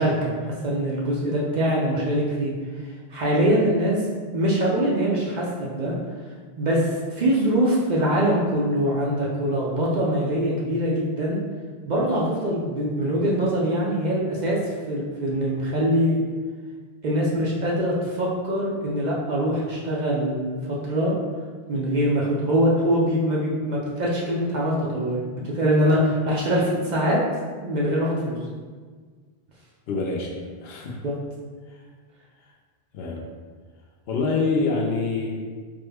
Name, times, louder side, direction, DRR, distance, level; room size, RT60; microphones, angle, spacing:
voice 1, 0.0-2.5 3.1-4.0 4.3-5.9 6.6-11.4 11.9-14.6 14.9-16.2 17.0-21.1 21.7-27.2 27.6-28.4 31.0-31.1, equal, 55° right, -5 dB, 0.6 m, -23 dB
voice 2, 29.9-30.4 30.6-31.0 31.7-31.8 32.9-33.2 34.1-35.4, left 3 dB, 75° left, 0 dB, 0.8 m, -26 dB
3.4 x 2.1 x 3.4 m, 1.5 s
omnidirectional pair, 1.1 m